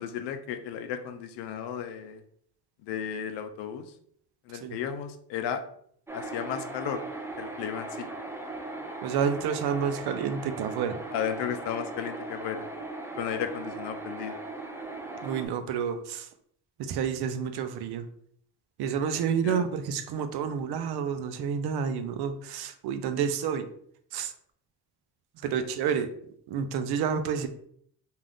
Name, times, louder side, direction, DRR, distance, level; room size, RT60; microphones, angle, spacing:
voice 1, 0.0-2.2 2.9-3.8 4.5-5.6 6.1-7.0 7.4-8.1 11.1-12.7 13.2-14.4 19.4-19.6, left 8 dB, 85° left, 8 dB, 0.5 m, -34 dB
sound 1, 6.1-15.5, right 2 dB, 5° right, 0.5 m, -38 dB
voice 2, 9.0-11.0 15.2-16.3 16.8-18.1 18.8-23.7 24.1-24.3 25.4-26.1 26.5-27.5, right 7 dB, 70° right, 9 dB, 0.5 m, -29 dB
2.5 x 2.4 x 3.4 m, 0.65 s
cardioid pair, 80°, 40 cm